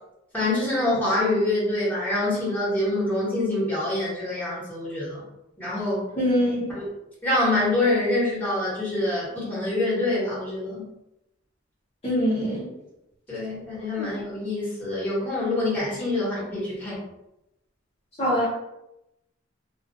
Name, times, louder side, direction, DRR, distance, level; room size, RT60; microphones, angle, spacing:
voice 1, 0.3-5.2 5.6-6.1 6.7-6.8 7.2-10.8 13.3-17.0, left 2 dB, 10° left, -7 dB, 1.0 m, -25 dB
voice 2, 6.2-6.7 12.0-12.7 14.0-14.1 18.2-18.5, equal, 30° left, -9 dB, 0.6 m, -23 dB
2.3 x 2.1 x 2.5 m, 0.88 s
head